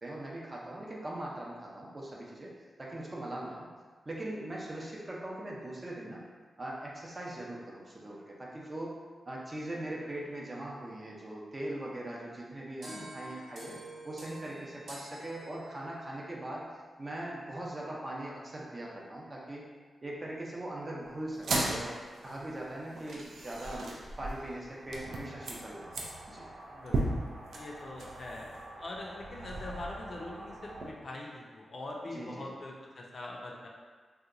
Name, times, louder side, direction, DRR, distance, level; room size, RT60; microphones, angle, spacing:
voice 1, 0.0-2.5 2.8-3.7 4.1-6.2 6.6-9.0 9.3-13.8 14.0-16.6 17.0-19.6 20.0-22.0 22.2-23.9 24.2-26.5 32.1-32.6, right 1 dB, 25° right, -4 dB, 0.6 m, -40 dB
sound 1, 12.8-16.1, right 1 dB, 75° right, 0.8 m, -47 dB
sound 2, 21.3-30.9, right 2 dB, 90° right, 0.4 m, -38 dB
voice 2, 26.7-27.2 27.5-28.5 28.8-33.7, left 2 dB, 50° left, -2 dB, 0.5 m, -43 dB
2.8 x 2.2 x 3.7 m, 1.5 s
wide cardioid pair, 120°, 0 cm